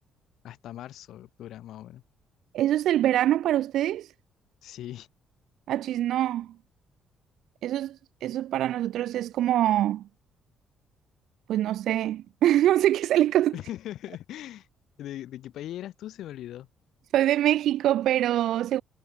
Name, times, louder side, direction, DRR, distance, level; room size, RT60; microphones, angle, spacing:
voice 1, 0.4-2.0 4.6-5.1 13.5-14.7 15.0-16.7, left 12 dB, 70° left, 3.9 m, -39 dB
voice 2, 2.5-4.1 5.7-6.5 7.6-10.0 11.5-13.5 17.1-18.8, right 12 dB, 70° right, 0.5 m, -24 dB
cardioid pair, 175°, 0 cm